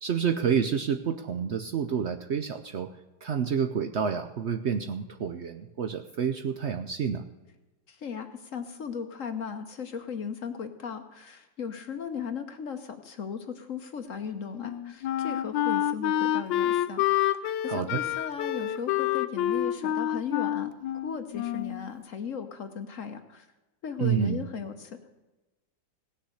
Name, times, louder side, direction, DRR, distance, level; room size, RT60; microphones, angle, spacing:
voice 1, 0.0-2.9 3.2-7.2 17.7-18.0 24.0-24.5, right 7 dB, 85° right, 7 dB, 0.6 m, -29 dB
voice 2, 7.9-17.0 17.3-20.7 21.0-23.5 23.8-25.0, left 6 dB, 55° left, 8 dB, 1.1 m, -37 dB
Wind instrument woodwind instrument, 14.6-21.9, left 12 dB, 80° left, 1.3 m, -28 dB
17.0 x 6.6 x 7.9 m, 1.1 s
omnidirectional pair, 2.0 m